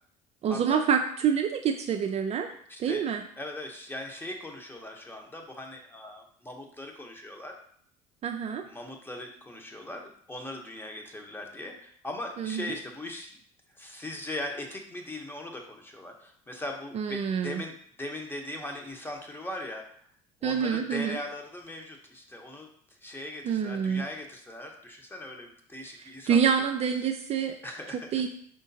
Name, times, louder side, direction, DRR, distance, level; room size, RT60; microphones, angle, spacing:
voice 1, 0.4-2.5 2.8-3.2 8.2-8.7 12.4-12.7 16.9-17.6 20.4-21.2 23.4-24.0 25.9-27.6 27.9-28.3, right 7 dB, 40° right, 5 dB, 0.4 m, -27 dB
voice 2, 2.7-3.0 3.4-7.5 8.7-13.3 13.8-19.8 20.4-22.7 23.0-26.4 27.6-28.3, left 1 dB, 10° left, 2 dB, 1.0 m, -39 dB
5.1 x 3.6 x 2.8 m, 0.62 s
hypercardioid pair, 65°, 17 cm